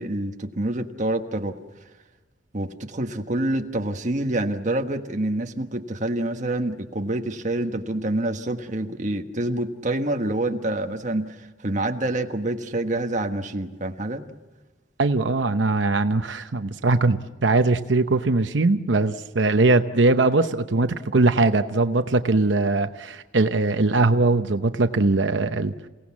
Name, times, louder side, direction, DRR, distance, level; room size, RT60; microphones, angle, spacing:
voice 1, 0.0-1.6 2.5-14.2, right 1 dB, 45° right, 5 dB, 1.4 m, -27 dB
voice 2, 15.0-25.7, right 3 dB, 85° right, 9 dB, 0.8 m, -21 dB
29.0 x 17.5 x 7.3 m, 1.2 s
head